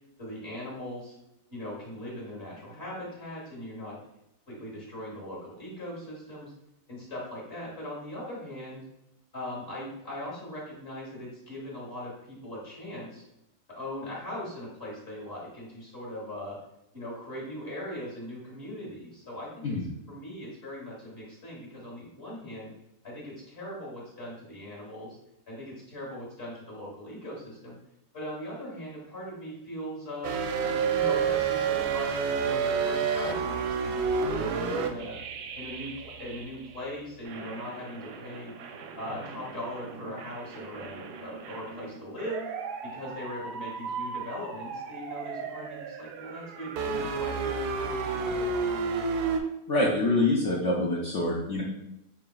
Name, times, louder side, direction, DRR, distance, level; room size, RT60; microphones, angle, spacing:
voice 1, 0.2-1.1 1.5-4.0 4.5-6.5 6.9-8.8 9.3-13.2 13.7-16.6 16.9-19.7 20.1-22.7 23.0-25.2 25.5-27.8 28.1-30.4 30.9-35.2 35.5-35.9 36.2-38.5 39.0-42.5 42.8-48.7, left 1 dB, 35° left, -4 dB, 1.3 m, -40 dB
sound 1, 30.2-36.8 37.3-49.4, right 5 dB, 70° right, 1.0 m, -31 dB
voice 2, 49.7-51.6, left 2 dB, 70° left, -3 dB, 0.7 m, -25 dB
5.7 x 3.5 x 2.3 m, 0.86 s
omnidirectional pair, 2.0 m